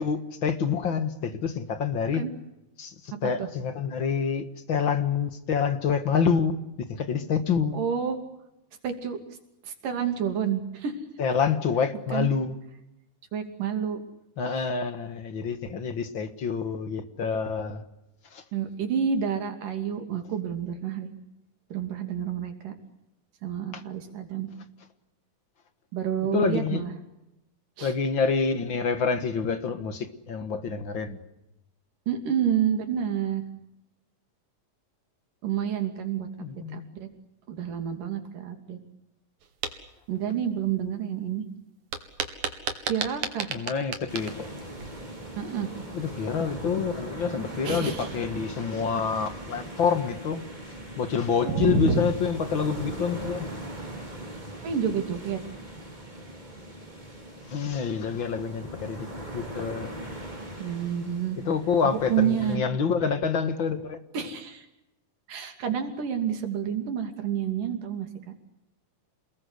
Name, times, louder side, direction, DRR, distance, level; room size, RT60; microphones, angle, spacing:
voice 1, 0.0-2.2 2.8-2.9 3.2-6.6 6.9-7.8 11.2-12.6 14.4-17.8 18.3-18.4 26.3-26.8 27.8-31.2 36.4-36.9 43.5-44.5 45.9-50.4 51.0-53.5 57.5-59.1 59.3-59.9 61.5-64.0, left 6 dB, 45° left, 1.9 m, -27 dB
voice 2, 7.7-8.2 8.8-9.2 9.6-11.0 12.1-12.3 13.3-14.0 14.5-14.7 18.5-21.1 21.7-22.7 23.4-24.5 25.9-26.9 27.8-27.9 32.1-33.4 35.4-36.3 36.7-37.1 37.5-38.8 40.1-41.5 42.8-43.5 45.4-45.7 47.6-48.1 51.4-52.0 54.6-55.4 60.6-61.4 61.8-62.6 64.1-64.7 65.3-68.3, right 8 dB, 90° right, 4.5 m, -29 dB
sound 1, 39.4-39.8 41.9-45.1, right 6 dB, 70° right, 3.5 m, -33 dB
sound 2, 44.1-62.6, right 1 dB, 10° right, 5.3 m, -40 dB
28.0 x 21.0 x 8.1 m
omnidirectional pair, 3.7 m